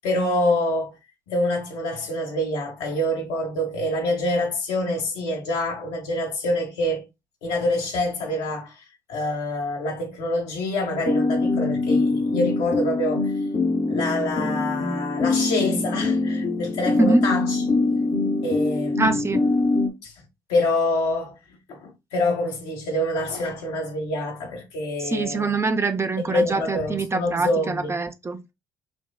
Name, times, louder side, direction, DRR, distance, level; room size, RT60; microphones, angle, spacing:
voice 1, 0.0-1.0 1.3-7.1 7.4-13.3 13.9-17.6 18.4-19.1 20.0-20.1 20.5-21.3 21.7-25.5 26.2-27.9, left 1 dB, 70° left, 1.3 m, -26 dB
sound 1, 10.9-19.9, left 3 dB, 40° left, 0.9 m, -23 dB
voice 2, 19.0-19.6 25.0-28.4, right 3 dB, 25° right, 0.6 m, -24 dB
6.0 x 2.2 x 2.2 m
hypercardioid pair, 50°, 11 cm